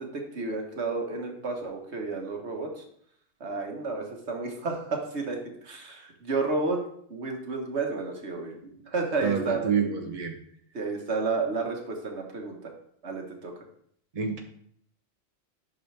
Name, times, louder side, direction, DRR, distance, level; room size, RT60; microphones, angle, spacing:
voice 1, 0.0-2.8 3.4-5.4 5.6-6.8 7.1-8.5 8.9-9.7 10.7-12.7 13.0-13.5, right 3 dB, 80° right, 1 dB, 1.7 m, -31 dB
voice 2, 9.2-10.4 14.1-14.4, right 6 dB, 35° right, 2 dB, 1.1 m, -28 dB
10.5 x 6.0 x 3.4 m, 0.67 s
omnidirectional pair, 1.1 m